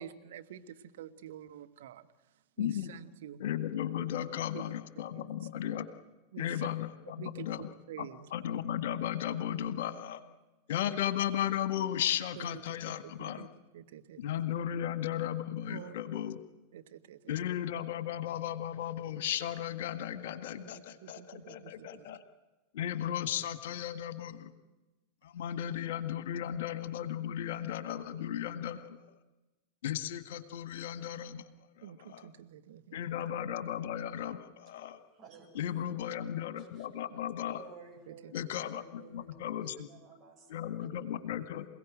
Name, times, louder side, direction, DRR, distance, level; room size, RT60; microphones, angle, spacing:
voice 1, 0.0-2.0 2.6-3.4 4.5-4.6 5.1-5.3 6.3-6.5 7.2-8.3 12.4-12.6 12.9-13.0 13.2-13.5 13.7-14.2 15.7-15.9 16.7-17.3 20.6-21.9 31.8-33.0 38.1-38.3, right 10 dB, 55° right, 9 dB, 1.4 m, -48 dB
voice 2, 2.6-2.9 3.4-5.9 6.4-7.7 8.0-10.2 10.7-13.5 14.2-16.4 17.3-22.2 22.7-24.5 25.2-29.0 29.8-31.4 31.8-32.3 32.9-35.0 35.5-37.6 38.3-39.9 40.5-41.7, left 10 dB, 55° left, 12 dB, 1.7 m, -35 dB
voice 3, 35.1-35.9 36.6-36.9 37.6-40.9 41.4-41.7, right 4 dB, 30° right, 1 dB, 7.4 m, -55 dB
28.0 x 17.0 x 9.1 m, 1.1 s
figure-of-eight pair, 90°, 0 cm